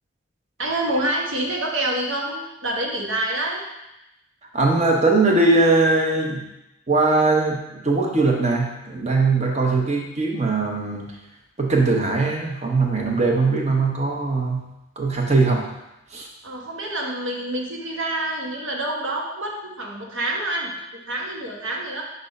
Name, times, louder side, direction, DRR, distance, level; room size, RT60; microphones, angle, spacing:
voice 1, 0.6-3.6 16.4-22.0, right 1 dB, 85° right, -1 dB, 1.2 m, -27 dB
voice 2, 4.5-6.4 6.9-11.1 11.6-14.6 15.0-15.7 16.1-16.3, right 3 dB, 35° right, 0 dB, 0.9 m, -20 dB
5.3 x 3.5 x 5.2 m, 0.92 s
head